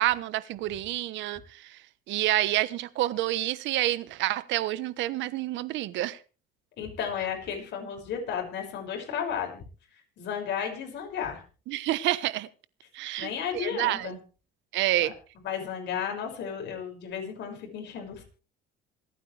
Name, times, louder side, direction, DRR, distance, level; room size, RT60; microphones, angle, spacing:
voice 1, 0.0-1.8 2.1-6.2 11.7-12.5 12.9-14.1 14.7-15.1, right 15 dB, 70° right, 1.1 m, -28 dB
voice 2, 6.8-9.6 10.2-11.4 13.2-14.2 15.0-15.1 15.4-18.2, left 8 dB, 60° left, 6.2 m, -33 dB
27.0 x 9.2 x 3.4 m
cardioid pair, 120°, 20 cm